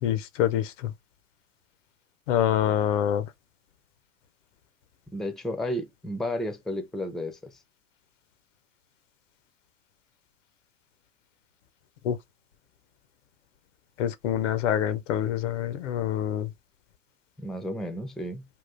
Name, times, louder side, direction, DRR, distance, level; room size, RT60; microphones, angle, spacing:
voice 1, 0.0-0.9 2.3-3.3 12.0-12.2 14.0-16.5, left 10 dB, 70° left, 0.6 m, -26 dB
voice 2, 5.1-7.6 17.4-18.4, left 1 dB, ahead, 0.5 m, -32 dB
3.6 x 2.4 x 2.4 m
hypercardioid pair, 90°, 38 cm